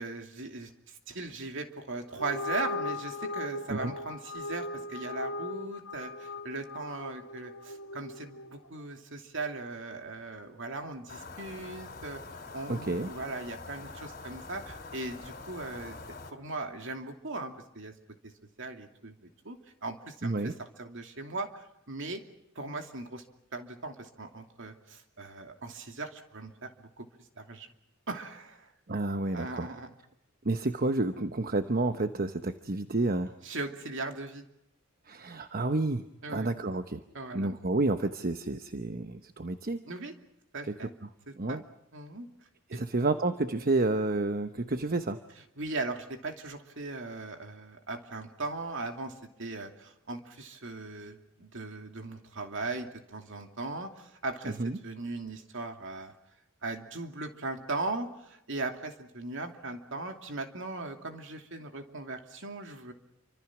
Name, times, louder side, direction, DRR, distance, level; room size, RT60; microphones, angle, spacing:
voice 1, 0.0-12.2 12.5-16.0 16.3-17.9 18.2-18.3 18.6-20.5 20.8-22.2 22.5-23.2 23.5-27.1 27.4-27.7 28.1-28.7 29.3-29.9 33.4-34.4 36.2-36.5 37.1-37.5 39.9-40.1 40.5-40.9 41.3-41.6 41.9-42.3 42.7-42.8 45.6-56.1 56.6-62.9, right 3 dB, 60° right, 5 dB, 2.7 m, -38 dB
sound 1, 2.1-8.7, left 2 dB, 65° left, 1.7 m, -38 dB
sound 2, 11.1-16.3, left 3 dB, 45° left, 3.3 m, -45 dB
voice 2, 12.7-13.1 20.2-20.5 28.9-29.7 30.4-33.3 35.1-37.0 37.3-39.8 40.7-40.8 41.4-41.6 42.7-45.2 54.6-54.8, right 2 dB, 40° right, 9 dB, 0.9 m, -30 dB
28.5 x 25.5 x 6.1 m, 0.85 s
head